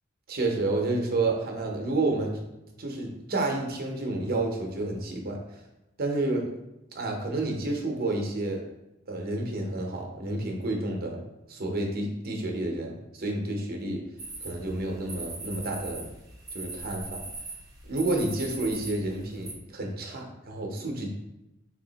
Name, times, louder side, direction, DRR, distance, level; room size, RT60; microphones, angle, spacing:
voice 1, 0.3-2.3 2.8-5.6 6.0-6.5 6.9-8.6 9.1-11.2 11.5-14.0 14.4-16.0 16.5-17.2 17.9-21.1, right 2 dB, 50° right, 2 dB, 0.7 m, -30 dB
sound 1, 14.2-19.5, right 3 dB, 20° right, 0.8 m, -40 dB
3.6 x 2.8 x 3.9 m, 0.93 s
head